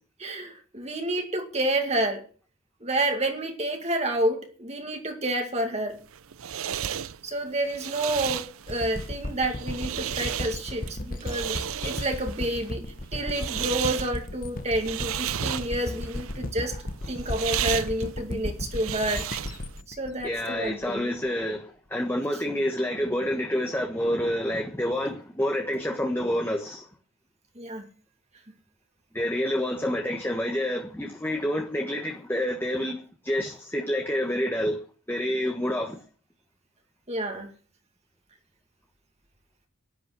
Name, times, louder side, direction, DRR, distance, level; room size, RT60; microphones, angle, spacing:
voice 1, 0.2-2.3 2.8-6.0 7.2-19.2 19.9-21.1 27.6-27.9 37.1-37.5, right 1 dB, 30° right, 2.1 m, -29 dB
sound 1, 5.9-19.8, right 10 dB, 80° right, 0.6 m, -34 dB
sound 2, 8.7-21.3, left 1 dB, 40° left, 1.2 m, -35 dB
voice 2, 20.2-26.9 29.1-34.8 35.1-36.0, left 1 dB, 10° left, 1.4 m, -28 dB
12.5 x 11.0 x 6.2 m
head